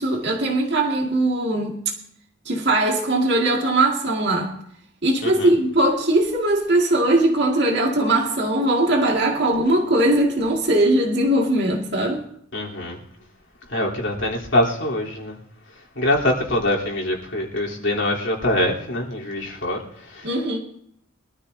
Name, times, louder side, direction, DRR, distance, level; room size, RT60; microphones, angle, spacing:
voice 1, 0.0-1.8 2.5-4.5 5.0-12.2 20.2-20.6, right 1 dB, 55° right, 2.1 m, -20 dB
voice 2, 12.5-13.0 13.7-15.4 16.0-20.3, left 1 dB, 65° left, 3.6 m, -24 dB
23.0 x 13.0 x 2.8 m
head